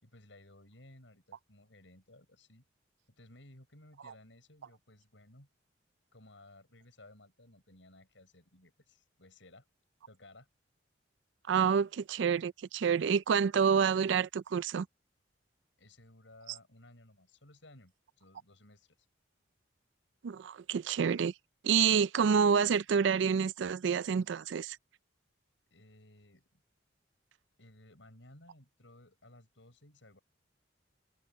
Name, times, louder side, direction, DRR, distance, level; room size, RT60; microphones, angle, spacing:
voice 1, 0.0-2.6 3.2-5.5 6.1-9.7 10.1-10.5 15.8-19.0 25.7-26.6 27.6-30.2, left 1 dB, 80° left, 6.9 m, -58 dB
voice 2, 11.5-14.9 20.2-21.3 21.6-24.8, right 6 dB, 75° right, 0.4 m, -28 dB
head